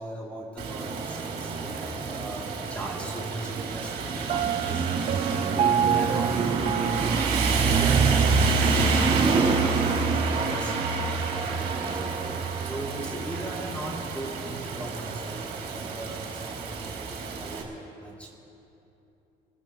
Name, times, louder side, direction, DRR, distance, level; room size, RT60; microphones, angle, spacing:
voice 1, 0.0-4.8 5.3-7.3 7.6-10.7 11.3-12.1 12.6-15.4 15.7-17.7 18.0-18.3, right 1 dB, 5° left, -5 dB, 3.7 m, -37 dB
Rain, 0.6-17.6, right 4 dB, 65° right, 3.6 m, -27 dB
Piano, 4.3-8.2, right 9 dB, 40° right, 0.4 m, -28 dB
28.0 x 14.5 x 3.4 m, 3.0 s
cardioid pair, 110°, 17 cm